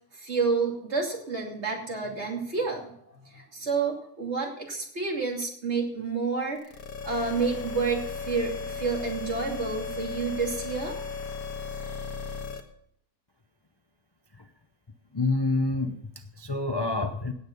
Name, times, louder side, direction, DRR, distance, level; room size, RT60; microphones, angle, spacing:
voice 1, 0.1-2.9 3.2-6.6 7.0-11.0, right 4 dB, 50° right, 0 dB, 3.0 m, -29 dB
sound 1, 6.6-12.6, left 5 dB, 80° left, 1.9 m, -36 dB
voice 2, 15.1-17.3, left 2 dB, 25° left, 6 dB, 0.6 m, -28 dB
17.0 x 8.3 x 5.3 m, 0.68 s
omnidirectional pair, 1.5 m